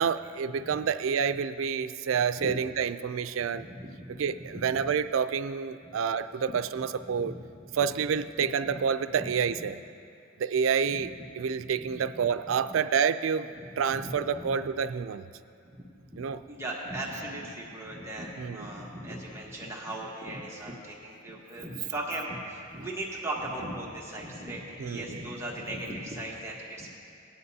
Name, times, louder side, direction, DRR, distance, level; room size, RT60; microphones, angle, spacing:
voice 1, 0.0-3.7 4.2-7.4 7.7-9.8 10.4-11.1 11.4-15.3 16.2-16.4 18.4-18.7 24.8-25.2, right 6 dB, 80° right, 13 dB, 0.4 m, -28 dB
voice 2, 3.5-4.6 5.8-5.9 6.5-6.6 7.2-7.4 9.2-9.3 11.0-11.1 11.8-12.3 13.7-14.1 14.4-14.5 16.1-16.2 16.5-26.9, right 1 dB, 15° right, -4 dB, 1.2 m, -38 dB
18.0 x 10.0 x 2.7 m, 2.6 s
head